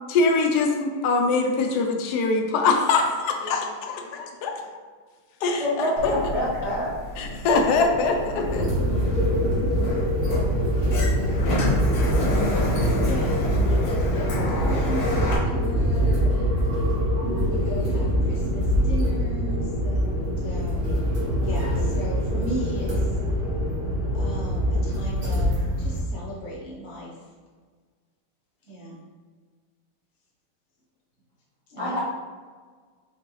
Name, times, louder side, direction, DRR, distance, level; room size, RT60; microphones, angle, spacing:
voice 1, 0.1-4.5 5.4-6.3 7.2-8.7, left 3 dB, 70° left, 2 dB, 1.0 m, -23 dB
voice 2, 5.6-6.9 31.8-32.0, left 1 dB, 60° right, -7 dB, 0.3 m, -26 dB
Sliding door, 6.0-15.4, left 1 dB, 90° left, 1.8 m, -30 dB
sound 1, 8.3-26.0, equal, 85° right, 2.2 m, -24 dB
voice 3, 10.9-12.2 13.0-16.6 17.4-21.0 21.3-23.2 24.1-27.3 28.6-29.0 31.7-32.0, equal, 30° left, -6 dB, 0.9 m, -37 dB
5.2 x 2.8 x 3.1 m, 1.5 s
omnidirectional pair, 2.2 m